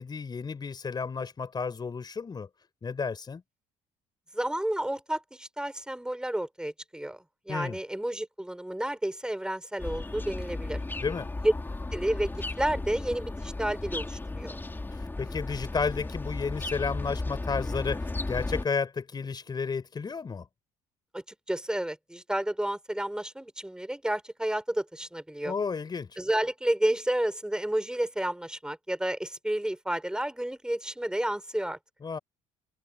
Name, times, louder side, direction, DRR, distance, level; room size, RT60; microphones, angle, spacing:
voice 1, 0.0-2.5 2.8-3.4 7.5-7.8 11.0-11.3 14.9-20.4 25.4-26.2 32.0-32.2, left 5 dB, 30° left, 4.5 m, -32 dB
voice 2, 4.3-10.8 11.4-11.5 11.9-14.6 21.1-25.5 26.2-31.8, right 1 dB, 5° right, 5.5 m, -31 dB
sound 1, 9.8-18.7, left 2 dB, 15° left, 3.7 m, -35 dB
open air
supercardioid pair, 80°, 13 cm